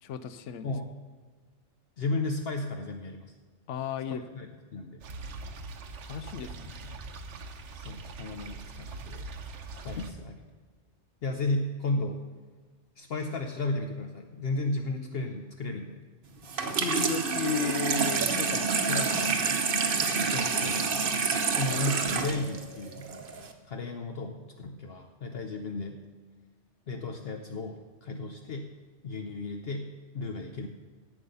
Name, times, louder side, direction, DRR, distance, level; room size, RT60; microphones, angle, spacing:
voice 1, 0.0-0.7 3.7-4.5 6.0-7.0 16.5-19.6, left 7 dB, 85° left, 13 dB, 1.0 m, -35 dB
voice 2, 2.0-3.3 4.1-4.5 4.7-5.0 7.7-9.3 9.8-10.3 11.2-12.2 13.0-16.0 20.2-20.9 21.5-23.1 23.6-26.0 26.9-28.7 29.0-30.7, left 2 dB, 60° left, 4 dB, 0.9 m, -34 dB
sound 1, 5.0-10.1, right 3 dB, 80° right, 1.1 m, -42 dB
Water tap faucet / Sink (filling or washing), 16.5-23.5, right 5 dB, 55° right, 1.0 m, -28 dB
11.0 x 8.0 x 5.4 m, 1.4 s
omnidirectional pair, 1.2 m